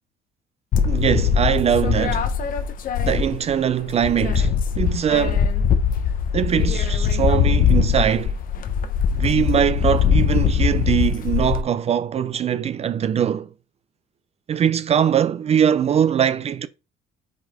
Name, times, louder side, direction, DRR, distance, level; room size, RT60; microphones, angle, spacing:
sound 1, 0.7-3.6 3.9-11.6, left 7 dB, 55° left, 0.9 m, -21 dB
voice 1, 0.8-2.3 3.0-5.5 6.3-8.4 9.1-13.5 14.5-16.7, right 9 dB, 40° right, 0.5 m, -21 dB
5.2 x 3.9 x 5.0 m
cardioid pair, 110°, 17 cm